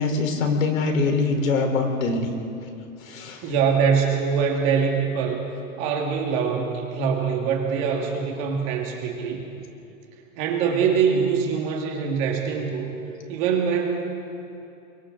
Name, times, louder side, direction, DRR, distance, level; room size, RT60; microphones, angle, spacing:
voice 1, 0.0-2.3 3.0-3.5, left 3 dB, 70° left, 4 dB, 3.9 m, -23 dB
voice 2, 3.4-5.4 5.8-9.4 10.4-12.9 13.3-13.9, right 6 dB, 25° right, 1 dB, 1.9 m, -23 dB
29.5 x 23.5 x 3.8 m, 2.8 s
supercardioid pair, 175°, 41 cm